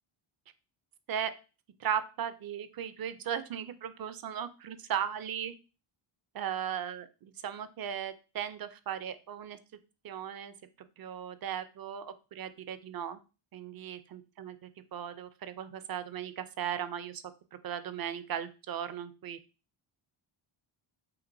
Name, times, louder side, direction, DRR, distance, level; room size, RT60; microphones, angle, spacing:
voice 1, 1.8-5.5 6.3-9.6 10.0-10.5 11.0-13.2 13.5-17.2 17.6-19.4, right 9 dB, 45° right, 12 dB, 0.5 m, -37 dB
5.8 x 2.9 x 2.6 m, 0.33 s
wide cardioid pair, 130°, 50 cm